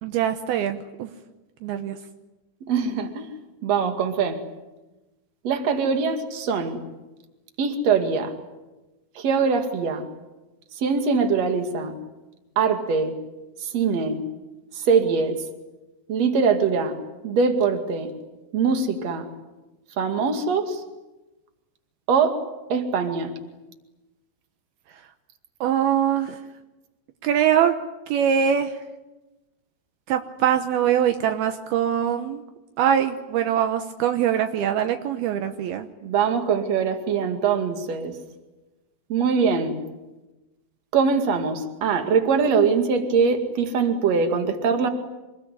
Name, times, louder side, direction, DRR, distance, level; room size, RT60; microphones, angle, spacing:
voice 1, 0.0-1.1 1.6-2.0 25.6-26.4 27.2-27.8 28.1-28.8 30.1-32.4 32.8-35.9, right 9 dB, 85° right, 7 dB, 2.2 m, -23 dB
voice 2, 2.7-3.3 3.6-4.4 5.4-6.8 7.6-8.3 9.2-10.1 10.7-12.0 12.6-13.2 13.6-14.2 14.7-15.4 16.1-17.0 17.2-18.1 18.5-19.3 20.0-20.8 22.1-22.4 22.7-23.4 36.0-38.2 39.1-39.8 40.9-44.9, right 5 dB, 45° right, 6 dB, 2.4 m, -22 dB
26.5 x 21.0 x 9.9 m, 1.1 s
omnidirectional pair, 5.9 m